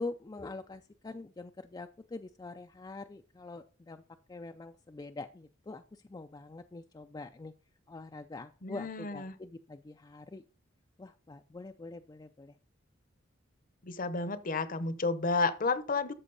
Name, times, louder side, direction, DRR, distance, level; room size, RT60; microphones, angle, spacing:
voice 1, 0.0-4.0 4.3-7.5 7.9-10.4 11.0-12.5, left 3 dB, 20° left, 0.4 m, -44 dB
voice 2, 8.6-9.3 13.8-16.1, left 3 dB, 45° left, 0.8 m, -31 dB
13.0 x 6.1 x 4.0 m
head